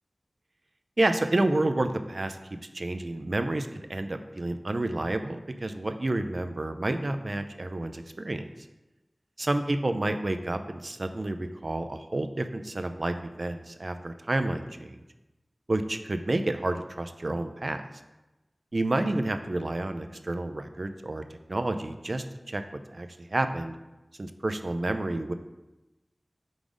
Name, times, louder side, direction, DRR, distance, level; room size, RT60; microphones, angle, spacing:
voice 1, 1.0-2.4 2.7-8.4 9.4-15.0 15.7-17.8 18.7-21.2 21.5-22.6 22.9-23.7 24.2-25.3, right 2 dB, 55° right, 8 dB, 0.4 m, -29 dB
5.1 x 3.9 x 4.8 m, 1.1 s
wide cardioid pair, 60°, 0 cm